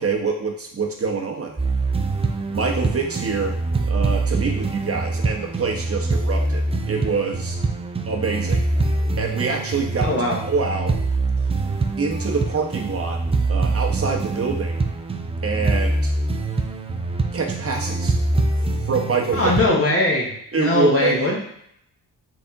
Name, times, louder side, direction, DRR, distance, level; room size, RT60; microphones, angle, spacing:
voice 1, 0.0-1.6 2.5-3.6 3.8-6.6 6.9-7.6 8.1-10.1 10.4-10.9 12.0-13.2 13.5-14.8 15.4-16.1 17.3-18.2 18.9-19.6 20.5-21.2, right 4 dB, 30° right, 0 dB, 1.0 m, -25 dB
sound 1, 1.6-19.7, right 3 dB, 15° right, 0.4 m, -24 dB
voice 2, 10.0-10.4 19.3-20.3 20.6-21.4, left 2 dB, 30° left, -3 dB, 1.1 m, -20 dB
3.7 x 2.6 x 3.5 m, 0.72 s
supercardioid pair, 50°, 47 cm